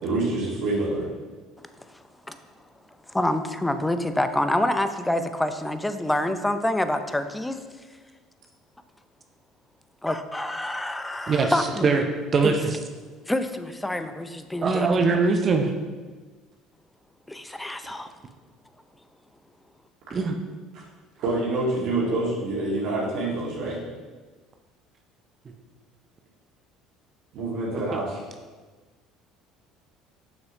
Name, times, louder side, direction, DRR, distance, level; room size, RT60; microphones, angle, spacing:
voice 1, 0.0-1.1 20.7-20.8 21.2-23.8 27.3-28.2, right 2 dB, 60° right, -5 dB, 1.9 m, -26 dB
voice 2, 3.1-7.6 10.0-11.9 12.4-12.6 13.3-14.9 17.3-18.1, left 1 dB, 10° left, 9 dB, 0.6 m, -27 dB
voice 3, 11.3-12.0 12.3-12.8 14.6-15.7 20.1-20.4 27.7-28.0, right 4 dB, 40° right, 4 dB, 0.6 m, -22 dB
7.2 x 6.2 x 3.0 m, 1.4 s
hypercardioid pair, 60°, 0 cm